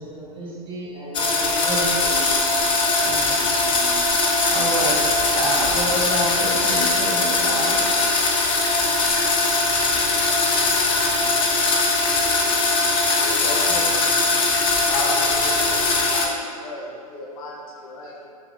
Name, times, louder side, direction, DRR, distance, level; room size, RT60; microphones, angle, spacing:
voice 1, 0.0-2.9, right 1 dB, 25° right, -6 dB, 1.4 m, -34 dB
sound 1, 1.1-16.3, left 3 dB, 25° left, 0.6 m, -20 dB
voice 2, 3.0-4.0 4.5-5.0 5.3-7.8, right 1 dB, 45° right, -3 dB, 0.9 m, -28 dB
voice 3, 13.0-14.1 14.8-18.3, left 2 dB, 65° left, -1 dB, 0.9 m, -33 dB
5.3 x 3.3 x 2.5 m, 2.3 s
hypercardioid pair, 105°, 19 cm